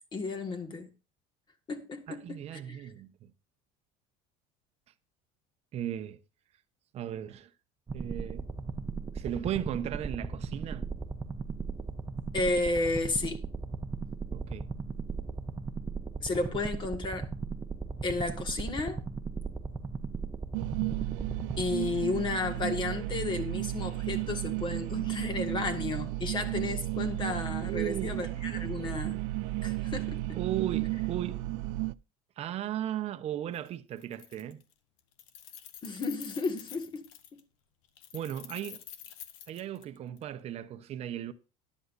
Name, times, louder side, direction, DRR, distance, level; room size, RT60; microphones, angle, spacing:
voice 1, 0.1-0.9 1.7-2.8 12.3-13.4 16.2-17.3 18.0-19.0 21.6-29.2 29.6-30.2 35.8-37.4, left 3 dB, 30° left, 1.8 m, -33 dB
voice 2, 2.1-3.3 5.7-6.2 6.9-7.5 7.9-8.5 9.1-10.9 14.3-14.7 27.6-28.2 30.3-31.4 32.4-34.6 38.1-38.8 39.5-41.3, right 11 dB, 40° right, 0.9 m, -36 dB
sound 1, 7.9-22.3, right 4 dB, 15° right, 1.0 m, -37 dB
sound 2, 20.5-31.9, right 17 dB, 80° right, 0.4 m, -33 dB
Keys jangling, 33.5-33.7 34.0-34.7 35.0-37.4 38.0-40.2, left 10 dB, 85° left, 1.2 m, -48 dB
14.0 x 11.0 x 2.6 m
cardioid pair, 135°, 16 cm